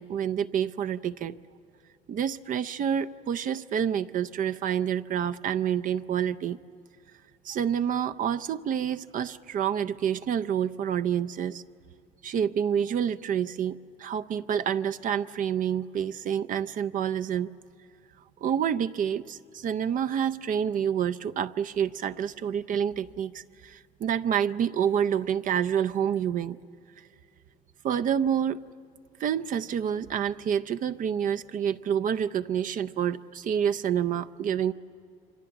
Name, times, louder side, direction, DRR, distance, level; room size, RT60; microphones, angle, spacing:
voice 1, 0.0-1.4 2.1-6.6 7.4-11.6 12.2-17.5 18.4-26.6 27.8-28.6 29.2-34.7, right 8 dB, 50° right, 11 dB, 0.6 m, -28 dB
27.0 x 24.5 x 7.9 m, 2.4 s
cardioid pair, 110°, 17 cm